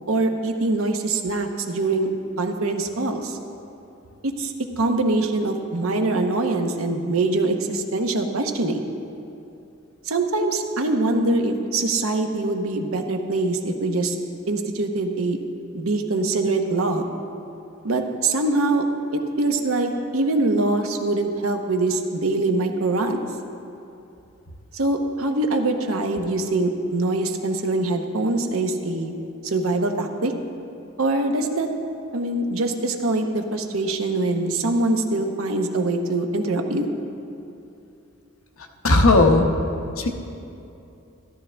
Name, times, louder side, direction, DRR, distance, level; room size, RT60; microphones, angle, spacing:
voice 1, 0.1-2.1 2.4-3.4 4.2-8.8 10.0-14.2 14.5-15.4 15.7-17.1 17.8-18.8 19.1-23.2 24.7-29.1 29.4-30.3 31.0-31.7 32.1-36.9, right 2 dB, 80° right, 5 dB, 0.9 m, -23 dB
voice 2, 38.8-39.5 40.0-40.1, left 2 dB, 75° left, 3 dB, 0.9 m, -15 dB
13.5 x 13.0 x 3.4 m, 2.7 s
head